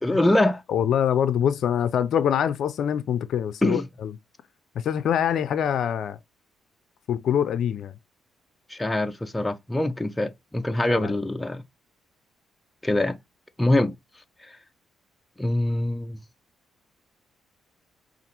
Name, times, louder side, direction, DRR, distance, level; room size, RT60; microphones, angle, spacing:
voice 1, 0.0-0.6 3.6-3.9 8.7-11.6 12.8-13.2 13.6-13.9 15.4-16.2, left 1 dB, 10° left, 0.5 m, -24 dB
voice 2, 0.7-4.1 4.8-6.2 7.1-7.9 10.9-11.1, left 9 dB, 70° left, 0.4 m, -24 dB
5.2 x 2.5 x 2.8 m
cardioid pair, 90°, 0 cm